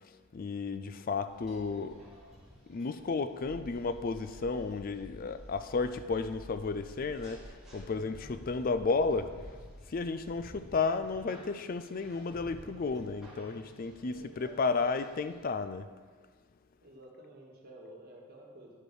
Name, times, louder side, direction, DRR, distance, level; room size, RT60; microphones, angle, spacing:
voice 1, 0.3-2.0 2.7-9.3 9.9-15.9, left 4 dB, 40° left, 11 dB, 0.4 m, -33 dB
sound 1, 1.3-15.4, right 1 dB, ahead, 2.3 m, -55 dB
sound 2, 3.4-10.5, equal, 20° left, 1.6 m, -51 dB
voice 2, 14.0-15.1 16.8-18.7, right 1 dB, 45° right, -2 dB, 1.7 m, -52 dB
10.5 x 5.2 x 4.8 m, 1.5 s
head